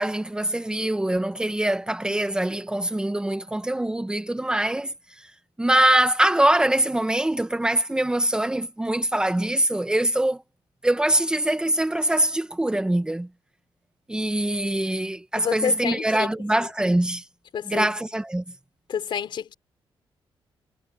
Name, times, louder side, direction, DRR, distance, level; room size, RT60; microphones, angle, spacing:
voice 1, 0.0-4.9 5.2-5.3 5.6-10.4 10.8-13.3 14.1-17.2 17.7-18.4, right 1 dB, 10° right, 1.1 m, -23 dB
voice 2, 15.4-16.3 16.6-16.7 17.5-17.9 18.9-19.5, left 8 dB, 60° left, 3.6 m, -29 dB
wide cardioid pair, 145°, 9 cm